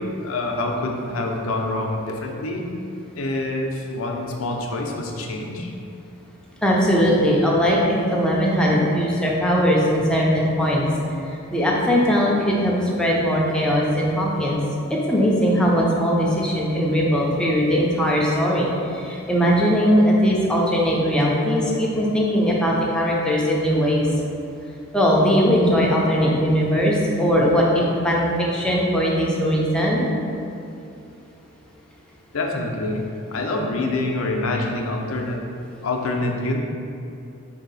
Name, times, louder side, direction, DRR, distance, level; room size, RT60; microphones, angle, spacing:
voice 1, 0.0-2.7 3.1-5.7 32.3-35.4 35.8-36.6, left 2 dB, 70° left, 1 dB, 0.5 m, -26 dB
voice 2, 6.6-10.9 11.5-14.6 14.9-24.1 24.9-30.1, equal, 5° left, -4 dB, 0.5 m, -20 dB
3.9 x 2.7 x 4.0 m, 2.6 s
head